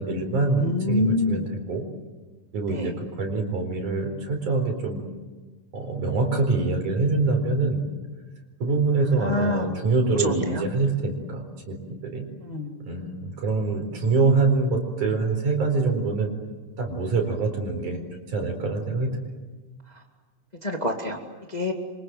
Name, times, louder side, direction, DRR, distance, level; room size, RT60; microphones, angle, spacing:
voice 1, 0.0-1.8 2.5-5.0 5.7-7.8 8.6-11.8 12.0-12.3 12.8-16.3 16.8-19.1, right 3 dB, 70° right, 4 dB, 5.8 m, -25 dB
voice 2, 0.6-1.5 2.7-2.9 9.2-9.7 10.1-10.6 12.4-12.8 20.6-21.2 21.5-21.7, left 1 dB, 15° left, 2 dB, 1.9 m, -26 dB
27.5 x 25.5 x 7.8 m, 1.3 s
omnidirectional pair, 3.6 m